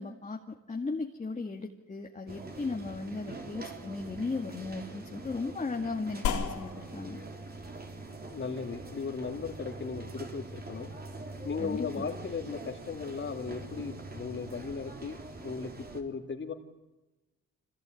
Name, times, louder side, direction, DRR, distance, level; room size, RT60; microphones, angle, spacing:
voice 1, 0.0-7.2 11.6-11.9, left 3 dB, 25° left, 2 dB, 2.1 m, -36 dB
sound 1, 2.3-16.0, right 2 dB, 30° right, 3.8 m, -44 dB
sound 2, 6.2-15.0, left 7 dB, 75° left, 3.7 m, -41 dB
voice 2, 8.3-10.9 11.4-15.2 15.4-16.5, left 5 dB, 40° left, 5 dB, 2.9 m, -37 dB
25.0 x 18.0 x 9.4 m, 1.1 s
cardioid pair, 90°, 30 cm